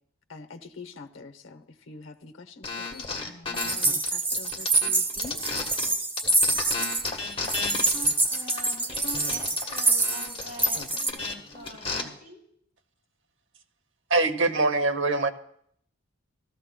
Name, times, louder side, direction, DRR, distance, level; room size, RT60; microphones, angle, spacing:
voice 1, 0.3-5.4 10.7-10.9 11.9-12.2, left 3 dB, 70° left, 8 dB, 0.8 m, -45 dB
sound 1, 2.6-5.9 6.2-12.0, left 3 dB, 30° left, 1.2 m, -33 dB
sound 2, 3.5-7.1 7.4-11.1, right 2 dB, 10° right, 0.6 m, -26 dB
voice 2, 7.8-12.4, equal, 45° right, -3 dB, 5.3 m, -45 dB
voice 3, 14.1-15.3, right 3 dB, 65° right, 9 dB, 0.8 m, -23 dB
16.0 x 13.5 x 2.2 m, 0.67 s
head